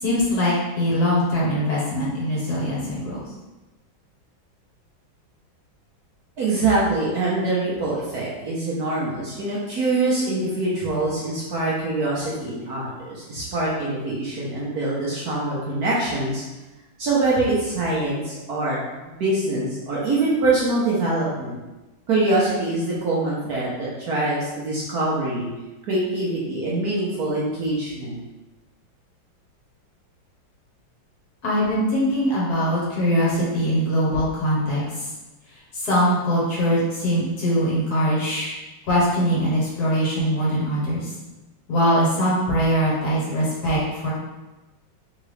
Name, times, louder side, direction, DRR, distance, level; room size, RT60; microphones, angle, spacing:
voice 1, 0.0-3.2 31.4-35.1 35.7-38.5 38.9-41.1 41.7-44.1, equal, 55° left, -6 dB, 1.6 m, -22 dB
voice 2, 6.4-16.4 17.0-18.8 19.1-21.6 22.1-25.5 25.9-28.2, right 2 dB, 60° right, -6 dB, 1.2 m, -24 dB
3.8 x 3.7 x 3.2 m, 1.1 s
omnidirectional pair, 2.2 m